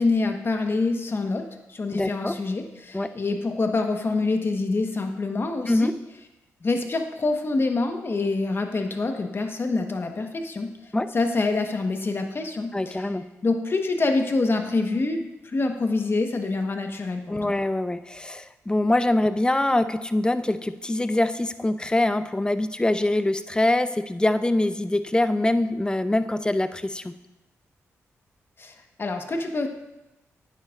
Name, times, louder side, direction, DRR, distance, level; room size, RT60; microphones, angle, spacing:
voice 1, 0.0-5.9 6.6-13.1 13.4-17.6 28.6-29.7, left 3 dB, 45° left, 4 dB, 1.3 m, -26 dB
voice 2, 1.9-2.3 2.9-3.1 5.7-5.9 10.9-11.1 12.7-13.2 17.3-27.1, left 1 dB, 15° left, 11 dB, 0.6 m, -24 dB
10.5 x 9.4 x 2.5 m, 0.98 s
cardioid pair, 55°, 6 cm